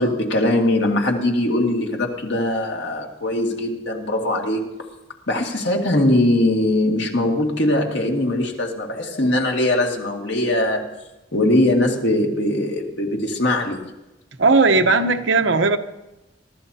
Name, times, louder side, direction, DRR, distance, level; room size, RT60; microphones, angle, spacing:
voice 1, 0.0-4.8 5.3-10.9 11.3-13.8, left 1 dB, 75° left, 1 dB, 2.2 m, -21 dB
voice 2, 14.4-15.8, right 3 dB, 90° right, 7 dB, 1.0 m, -16 dB
24.0 x 13.0 x 2.8 m, 0.99 s
head